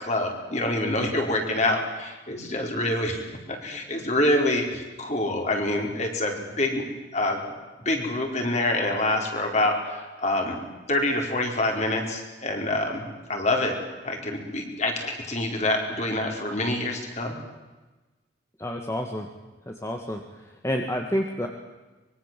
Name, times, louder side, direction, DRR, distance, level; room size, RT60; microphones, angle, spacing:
voice 1, 0.1-3.3 3.6-6.8 7.1-7.4 7.8-10.5 10.9-13.0 13.3-13.7 14.0-17.4, left 1 dB, 35° left, 2 dB, 4.6 m, -26 dB
voice 2, 18.6-19.3 19.7-20.2 20.6-21.5, equal, 15° left, 3 dB, 1.8 m, -28 dB
24.5 x 23.0 x 7.6 m, 1.2 s
head